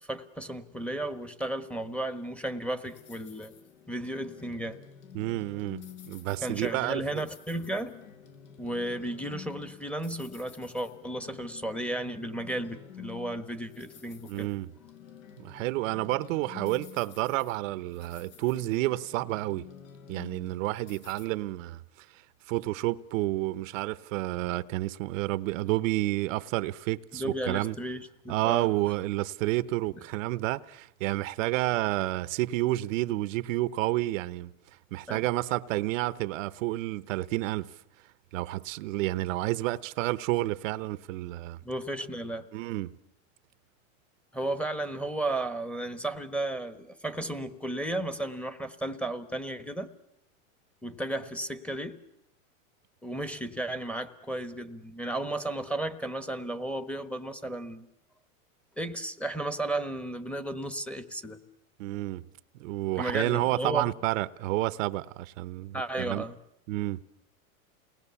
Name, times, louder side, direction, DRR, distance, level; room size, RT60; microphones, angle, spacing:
voice 1, 0.1-3.5 3.9-4.8 6.4-8.0 8.6-14.5 27.1-28.7 35.1-35.2 41.6-42.5 44.3-49.9 50.8-52.0 53.0-57.9 58.8-61.4 63.0-63.9 65.7-66.4, right 1 dB, 5° left, 1.2 m, -34 dB
sound 1, 2.8-21.3, left 9 dB, 75° left, 4.3 m, -49 dB
voice 2, 5.1-7.2 14.3-14.7 15.4-19.6 20.1-22.1 22.5-27.7 28.3-34.5 34.9-37.7 38.3-41.6 42.5-42.9 61.8-62.2 62.6-66.2 66.7-67.0, right 18 dB, 65° right, 0.9 m, -30 dB
29.0 x 20.0 x 7.0 m
supercardioid pair, 130°, 42 cm